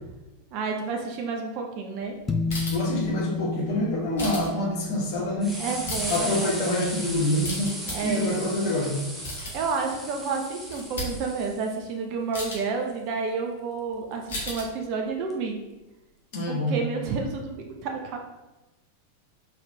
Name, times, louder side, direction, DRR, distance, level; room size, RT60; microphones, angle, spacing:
voice 1, 0.5-2.2 5.6-6.7 7.8-8.5 9.5-15.6 16.5-18.2, right 4 dB, 45° right, 2 dB, 0.6 m, -30 dB
sound 1, 2.2-2.3 2.5-2.6 2.9-3.1 3.7-4.4 5.0-5.1 5.4-11.8 13.9-14.0 15.3-15.4, equal, 5° right, 1.0 m, -37 dB
sound 2, 2.3-8.9, left 4 dB, 15° left, 0.5 m, -34 dB
sound 3, 2.5-2.9 4.2-4.5 5.6-6.2 7.0-7.9 9.0-9.7 10.3-10.4 10.6-11.1 12.3-12.6 14.3-14.6, left 1 dB, 65° left, 1.5 m, -34 dB
voice 2, 2.7-5.6 6.1-7.7 8.0-9.0 16.3-16.8, left 1 dB, 45° left, -3 dB, 1.5 m, -26 dB
4.6 x 4.0 x 2.8 m, 1.0 s
figure-of-eight pair, 90°, 0 cm